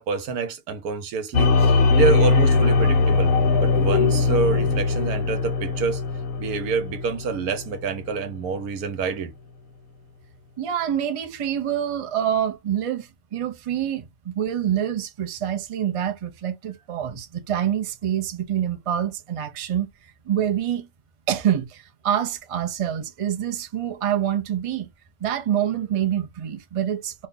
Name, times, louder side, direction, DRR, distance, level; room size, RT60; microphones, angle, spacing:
voice 1, 0.0-6.0 6.4-9.3, right 5 dB, 90° right, 1.3 m, -27 dB
sound 1, 1.3-8.1, left 4 dB, 80° left, 1.3 m, -20 dB
voice 2, 10.6-19.9 20.3-20.9 21.3-24.9 25.2-27.3, right 10 dB, 60° right, 0.3 m, -26 dB
3.2 x 2.2 x 3.7 m
omnidirectional pair, 1.5 m